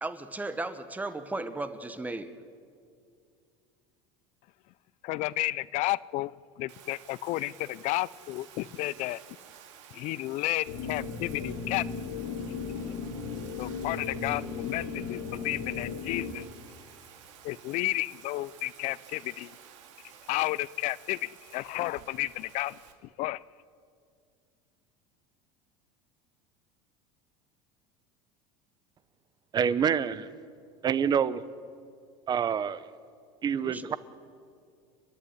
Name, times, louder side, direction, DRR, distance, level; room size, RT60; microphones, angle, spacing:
voice 1, 0.0-2.3 33.6-34.0, right 2 dB, 10° right, 12 dB, 1.2 m, -35 dB
voice 2, 5.0-9.2 9.9-11.8 12.5-12.9 13.6-16.5 17.4-19.6 20.3-22.8 23.2-23.4, left 18 dB, 50° left, 20 dB, 0.5 m, -32 dB
Bathtub (filling or washing), 6.7-22.9, right 9 dB, 90° right, 2.5 m, -53 dB
sound 1, 10.7-16.3, left 5 dB, 80° left, 2.9 m, -36 dB
voice 3, 29.5-30.3 30.8-31.4 32.3-32.8 33.4-34.0, right 7 dB, 25° right, 17 dB, 0.8 m, -26 dB
30.0 x 11.5 x 9.9 m, 2.3 s
supercardioid pair, 135°, 15 cm